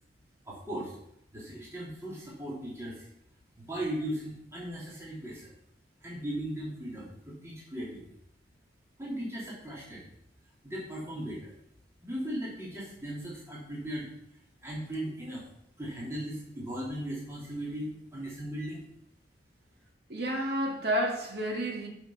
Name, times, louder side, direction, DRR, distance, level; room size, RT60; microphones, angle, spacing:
voice 1, 0.4-1.0 1.3-3.1 3.6-5.5 6.0-8.1 9.0-10.1 10.6-11.5 12.0-14.1 14.6-15.4 15.8-18.9, right 1 dB, 15° right, 2.8 m, -37 dB
voice 2, 20.1-21.9, equal, 60° right, 2.4 m, -30 dB
10.5 x 6.2 x 6.2 m
head